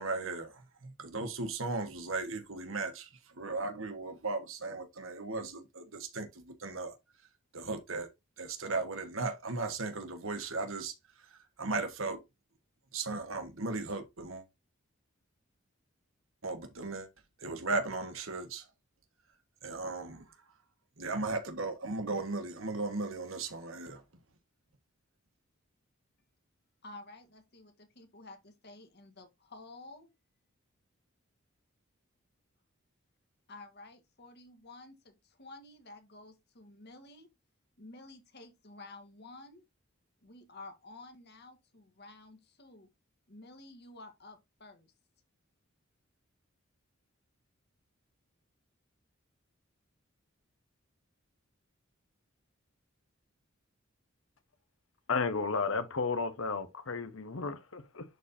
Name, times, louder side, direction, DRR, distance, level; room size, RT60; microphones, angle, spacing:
voice 1, 0.0-6.9 7.5-8.1 8.4-10.9 11.6-12.2 12.9-14.4 16.4-17.1 17.4-18.6 19.6-20.2 21.0-24.0, right 3 dB, 70° right, 1.4 m, -36 dB
voice 2, 26.8-30.1 33.5-37.3 37.8-39.6 40.2-42.9 43.3-44.9, left 2 dB, 55° left, 1.6 m, -52 dB
voice 3, 55.1-58.0, left 4 dB, 70° left, 1.0 m, -33 dB
10.5 x 4.2 x 2.7 m
head